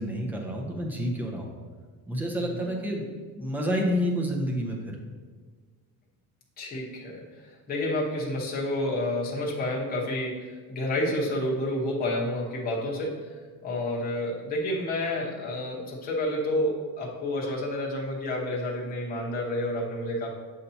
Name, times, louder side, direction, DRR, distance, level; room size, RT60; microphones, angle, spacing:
voice 1, 0.0-1.5 2.1-3.1 3.4-5.0, equal, 5° right, 0 dB, 0.6 m, -29 dB
voice 2, 2.4-2.7 6.6-13.3 13.6-20.3, left 1 dB, 25° left, -4 dB, 0.9 m, -30 dB
7.8 x 2.8 x 5.6 m, 1.5 s
cardioid pair, 175°, 38 cm